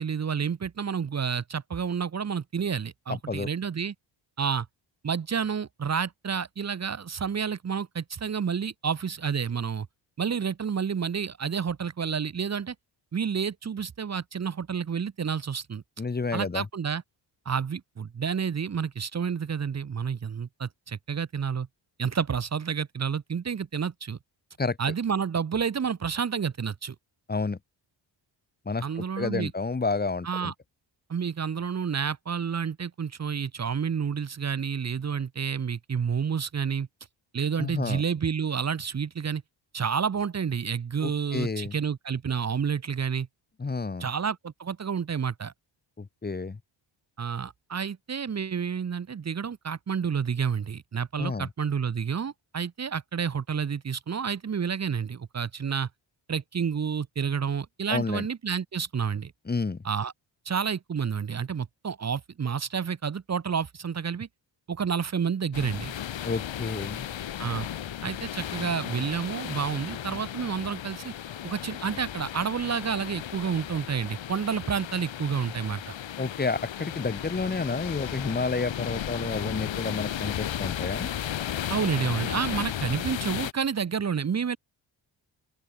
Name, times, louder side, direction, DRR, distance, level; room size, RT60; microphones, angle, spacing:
voice 1, 0.0-3.9 4.4-4.7 5.0-9.9 10.2-12.7 13.1-15.8 16.3-17.0 17.4-21.7 22.0-24.2 24.8-26.9 28.8-29.5 30.2-30.5 31.1-36.9 37.3-39.4 39.7-43.3 44.0-45.5 47.2-55.9 56.3-59.3 59.8-60.1 60.4-64.3 64.7-65.9 67.4-67.7 68.0-71.1 71.4-75.9 81.7-84.6, right 6 dB, 35° right, 1.6 m, -29 dB
voice 2, 3.1-3.5 16.0-16.7 24.6-24.8 27.3-27.6 28.7-30.5 37.6-38.0 41.0-41.7 43.6-44.1 46.0-46.6 51.2-51.5 57.9-58.2 59.5-59.8 66.2-67.1 76.2-81.1, left 4 dB, 20° left, 2.2 m, -30 dB
sound 1, 65.5-83.5, left 10 dB, 80° left, 7.5 m, -35 dB
open air
wide cardioid pair, 160°, 45 cm